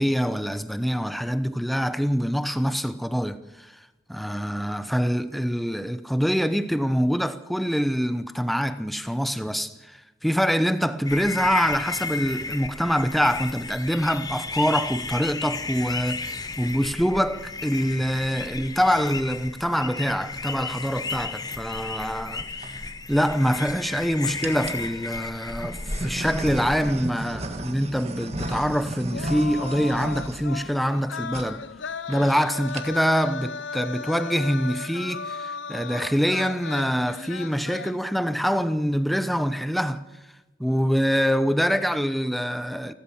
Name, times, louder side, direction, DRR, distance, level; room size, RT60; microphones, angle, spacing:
voice 1, 0.0-3.7 4.1-22.4 23.1-31.6 32.1-40.0 40.6-42.9, equal, ahead, 0.8 m, -25 dB
sound 1, 11.0-26.9, left 3 dB, 20° left, 1.0 m, -34 dB
sound 2, 22.3-22.7 23.4-23.9 24.4-24.9 25.6-31.0 31.3-31.5 31.8-31.9 32.1-32.4 32.6-33.1, right 1 dB, 35° right, 1.6 m, -34 dB
sound 3, 28.4-38.0, left 5 dB, 85° left, 0.6 m, -36 dB
28.5 x 13.0 x 7.3 m
head